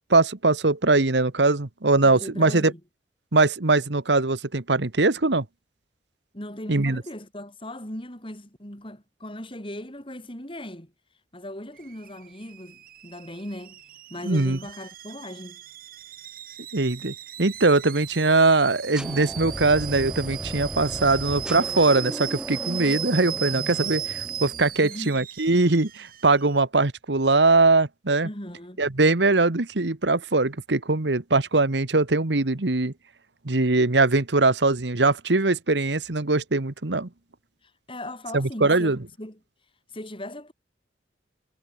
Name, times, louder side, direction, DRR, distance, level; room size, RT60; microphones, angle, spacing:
voice 1, 0.1-2.7 3.3-5.4 6.7-7.0 14.2-14.6 16.7-28.3 28.8-32.9 33.4-37.1 38.3-39.0, right 3 dB, 80° right, 1.4 m, -21 dB
voice 2, 2.0-2.8 6.3-10.9 11.3-13.8 14.1-15.6 24.8-25.2 28.2-28.8 37.9-39.4 39.9-40.5, left 1 dB, 30° left, 6.4 m, -38 dB
Alarm / Boiling, 11.8-26.6, right 10 dB, 55° right, 3.6 m, -37 dB
sound 1, 18.9-24.9, equal, 5° right, 1.3 m, -36 dB
head